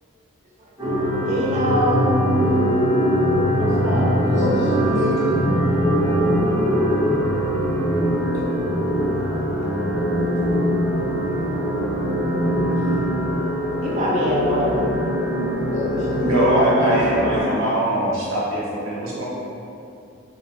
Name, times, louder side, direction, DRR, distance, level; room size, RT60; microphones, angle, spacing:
sound 1, 0.8-17.4, equal, 10° right, 0.9 m, -21 dB
voice 1, 1.3-2.1 3.6-4.1 13.8-14.8, equal, 30° right, -5 dB, 0.4 m, -24 dB
voice 2, 4.2-5.4 8.5-8.6 12.5-12.7 13.9-14.2 15.7-16.3, equal, 35° left, -6 dB, 0.5 m, -28 dB
voice 3, 16.2-19.2, right 1 dB, 70° right, -7 dB, 0.7 m, -21 dB
2.9 x 2.4 x 2.5 m, 2.6 s
head